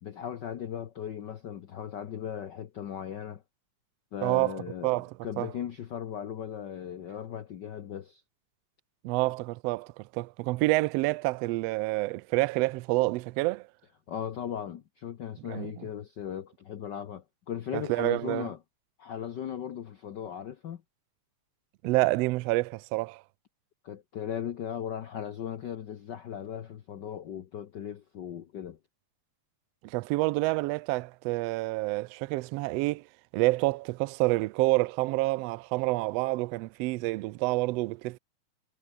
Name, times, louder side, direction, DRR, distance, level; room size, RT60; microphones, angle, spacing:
voice 1, 0.0-3.4 4.1-4.9 5.2-8.2 14.1-18.6 19.0-20.8 23.8-28.8, left 9 dB, 90° left, 0.9 m, -37 dB
voice 2, 4.2-5.5 9.0-13.7 15.5-15.8 17.7-18.5 21.8-23.2 29.8-33.0 33.3-38.2, right 22 dB, 90° right, 1.4 m, -28 dB
omnidirectional pair, 3.4 m